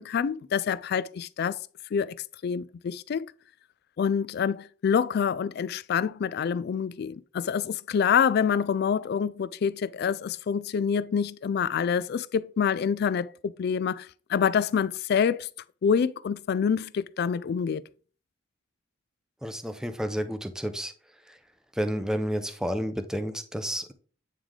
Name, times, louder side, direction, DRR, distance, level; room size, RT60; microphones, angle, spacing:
voice 1, 0.0-1.6 1.9-2.2 2.4-3.2 4.0-15.5 15.8-17.8, left 7 dB, 55° left, 0.3 m, -26 dB
voice 2, 19.4-20.9 21.3-21.4 21.8-23.9, equal, 5° right, 0.5 m, -30 dB
9.0 x 3.3 x 3.7 m
head